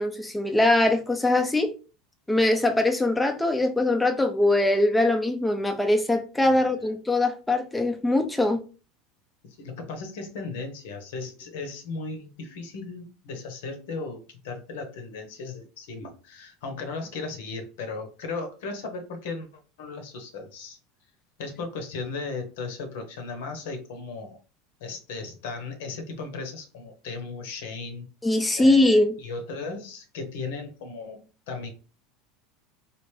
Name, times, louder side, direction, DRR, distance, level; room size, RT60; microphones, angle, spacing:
voice 1, 0.0-1.7 2.3-8.6 28.2-29.2, left 2 dB, 5° left, 0.5 m, -22 dB
voice 2, 6.4-6.9 9.4-19.5 19.8-20.8 21.4-24.4 24.8-28.1 28.6-31.7, left 4 dB, 80° left, 0.9 m, -36 dB
3.3 x 2.4 x 3.2 m
supercardioid pair, 120°, 0 cm